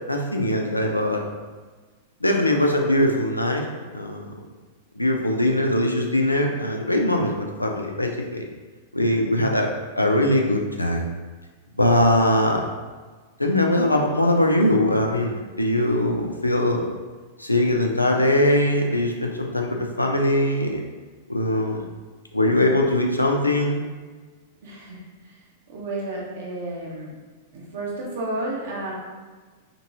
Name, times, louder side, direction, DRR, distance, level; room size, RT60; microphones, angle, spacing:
voice 1, 0.1-1.2 2.2-3.6 3.9-4.3 5.0-8.4 8.9-9.7 10.0-11.1 11.8-12.6 13.4-16.9 17.4-20.8 21.3-21.9 22.3-23.8, left 1 dB, 85° left, 2 dB, 0.4 m, -21 dB
voice 2, 24.6-25.0 25.7-27.1 27.5-28.9, right 2 dB, 60° right, -4 dB, 0.8 m, -31 dB
2.9 x 2.5 x 2.7 m, 1.4 s
figure-of-eight pair, 95°, 0 cm